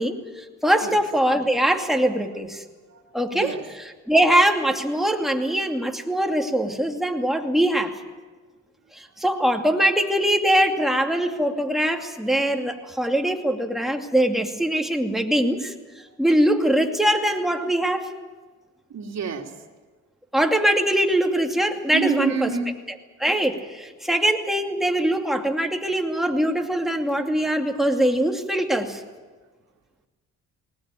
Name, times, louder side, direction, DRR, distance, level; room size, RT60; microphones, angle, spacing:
voice 1, 0.0-2.6 3.1-8.0 8.9-15.7 16.2-18.1 20.3-22.6 22.9-29.0, right 1 dB, ahead, 2 dB, 2.6 m, -22 dB
voice 2, 3.3-3.6 18.9-19.5 21.9-22.7, right 5 dB, 60° right, 2 dB, 2.8 m, -27 dB
20.0 x 19.5 x 9.0 m, 1.4 s
cardioid pair, 90°, 30 cm